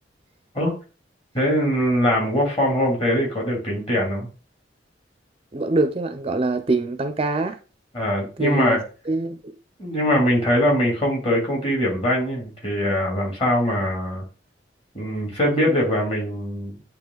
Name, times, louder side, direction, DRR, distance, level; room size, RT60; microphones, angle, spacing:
voice 1, 1.3-4.3 7.9-8.8 9.8-14.2 14.9-16.7, equal, 30° left, 2.6 m, -22 dB
voice 2, 5.5-7.6 8.4-8.8 9.1-9.6 15.5-15.8, right 2 dB, 30° right, 0.4 m, -24 dB
8.8 x 2.9 x 3.9 m
head